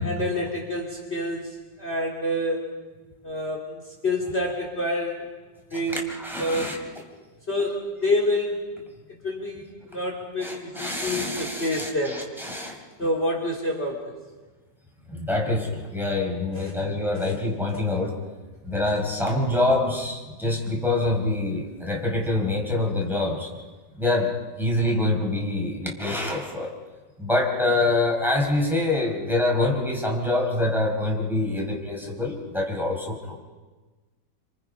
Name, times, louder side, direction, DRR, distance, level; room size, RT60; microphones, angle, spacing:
voice 1, 0.0-2.8 3.2-5.3 5.7-6.7 7.5-8.6 9.1-12.2 13.0-14.1 16.5-16.7 17.1-17.4 17.7-17.8, left 1 dB, 35° left, 0 dB, 3.3 m, -28 dB
voice 2, 5.7-6.8 10.4-12.8 15.1-18.1 18.6-23.5 23.9-24.3 24.6-26.7 27.2-33.4, left 2 dB, ahead, -1 dB, 4.8 m, -25 dB
29.0 x 27.0 x 5.5 m, 1.3 s
omnidirectional pair, 1.9 m